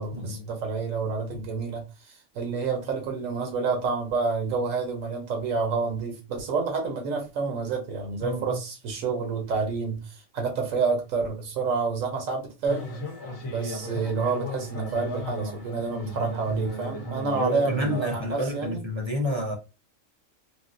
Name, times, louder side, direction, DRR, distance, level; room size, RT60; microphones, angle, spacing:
voice 1, 0.0-12.9 13.5-18.8, right 4 dB, 90° right, 1.2 m, -29 dB
voice 2, 8.2-8.6 15.9-16.1 17.4-19.6, equal, 45° right, 0.4 m, -29 dB
sound 1, 12.6-18.2, equal, 65° left, 1.0 m, -35 dB
3.6 x 2.2 x 2.5 m
omnidirectional pair, 1.3 m